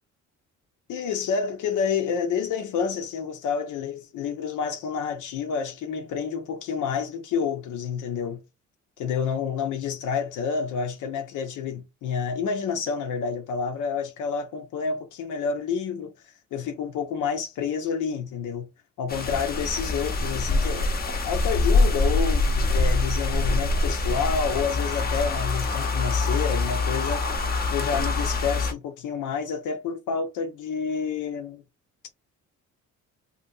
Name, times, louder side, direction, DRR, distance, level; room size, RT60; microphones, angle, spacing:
voice 1, 0.9-8.4 9.0-16.1 16.5-18.7 19.0-27.2 27.7-31.6, left 6 dB, 85° left, 0.7 m, -29 dB
sound 1, 19.1-28.7, left 3 dB, 30° left, 0.7 m, -24 dB
2.8 x 2.8 x 2.6 m
cardioid pair, 90°, 30 cm